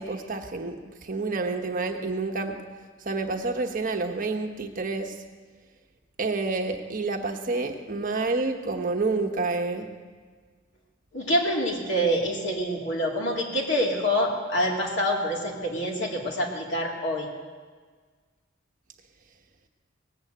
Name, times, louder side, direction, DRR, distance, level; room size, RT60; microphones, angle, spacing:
voice 1, 0.0-2.6 3.0-5.1 6.2-9.9, right 3 dB, 45° right, 4 dB, 1.1 m, -29 dB
voice 2, 11.1-17.3, equal, 65° left, -1 dB, 2.6 m, -26 dB
18.5 x 8.0 x 8.0 m, 1.5 s
head